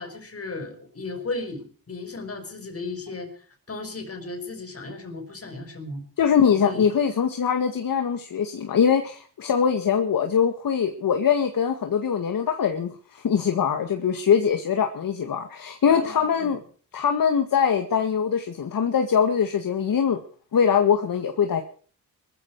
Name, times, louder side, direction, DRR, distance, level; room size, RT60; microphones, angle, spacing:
voice 1, 0.0-6.0 6.6-6.8 15.9-16.5, left 3 dB, 35° left, 7 dB, 5.5 m, -35 dB
voice 2, 6.2-16.6 16.9-20.2 20.5-21.6, left 7 dB, 55° left, 6 dB, 2.0 m, -22 dB
19.5 x 14.5 x 4.8 m, 0.44 s
cardioid pair, 75°, 40 cm